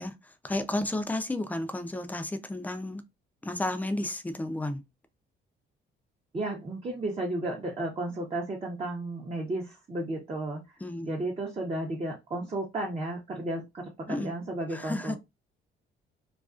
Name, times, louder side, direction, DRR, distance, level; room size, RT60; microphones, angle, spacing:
voice 1, 0.0-3.0 3.4-4.8 10.8-11.1 14.1-14.3 14.7-15.2, left 1 dB, 10° left, 0.4 m, -32 dB
voice 2, 6.3-10.6 11.0-15.2, right 2 dB, 30° right, 0.7 m, -33 dB
2.4 x 2.3 x 2.4 m
cardioid pair, 90°, 20 cm